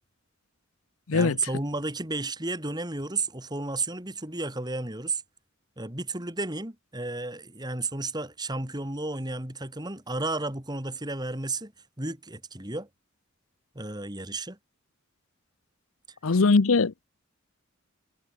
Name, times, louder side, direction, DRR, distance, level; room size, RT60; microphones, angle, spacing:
voice 1, 1.1-5.2 5.8-11.7 12.0-12.9 13.7-14.6, right 2 dB, 20° right, 3.4 m, -32 dB
voice 2, 16.2-17.1, left 4 dB, 90° left, 0.8 m, -21 dB
head